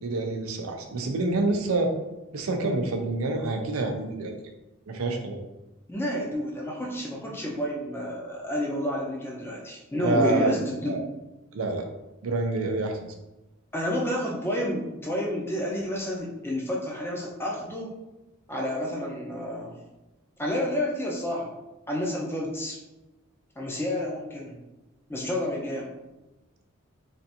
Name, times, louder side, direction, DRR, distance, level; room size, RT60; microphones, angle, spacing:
voice 1, 0.0-1.9 2.3-4.3 4.9-5.4 10.0-10.6 10.8-11.0 11.5-11.8 12.2-13.0, right 3 dB, 85° right, 4 dB, 0.5 m, -27 dB
voice 2, 5.9-11.0 13.7-17.9 18.5-19.7 20.4-21.5 21.9-22.8 23.6-24.6 25.1-25.9, left 1 dB, 10° left, -2 dB, 0.5 m, -30 dB
3.3 x 2.5 x 2.7 m, 1.0 s
head